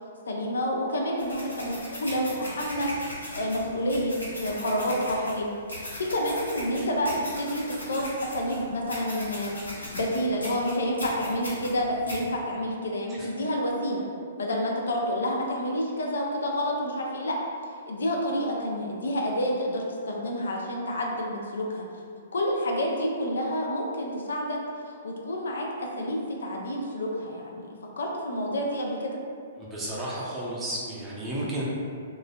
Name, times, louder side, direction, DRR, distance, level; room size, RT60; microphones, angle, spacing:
voice 1, 0.3-5.5 5.7-7.1 7.4-14.1 14.4-17.4 17.9-21.8 22.3-24.6 24.9-29.2, equal, 70° left, -1 dB, 0.4 m, -29 dB
sound 1, 1.2-12.2, equal, 90° left, 0.8 m, -39 dB
voice 2, 29.6-31.6, right 1 dB, 15° right, -6 dB, 0.6 m, -33 dB
3.0 x 2.3 x 2.3 m, 2.3 s
figure-of-eight pair, 120°, 0 cm